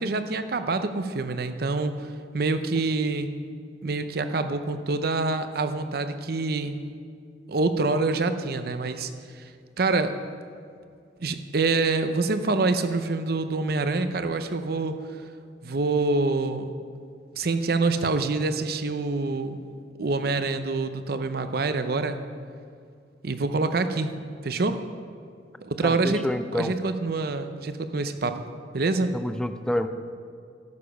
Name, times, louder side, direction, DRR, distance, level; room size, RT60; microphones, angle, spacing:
voice 1, 0.0-2.1 2.3-3.3 3.8-6.8 7.5-9.1 9.8-10.1 11.2-14.9 15.6-16.7 17.3-19.6 20.0-22.2 23.2-24.1 24.4-24.8 25.6-26.2 26.5-28.4 28.7-29.1, right 3 dB, 60° right, 9 dB, 0.6 m, -26 dB
voice 2, 25.8-26.7 29.1-29.9, left 1 dB, 5° left, 9 dB, 0.4 m, -28 dB
13.5 x 6.8 x 5.2 m, 2.3 s
head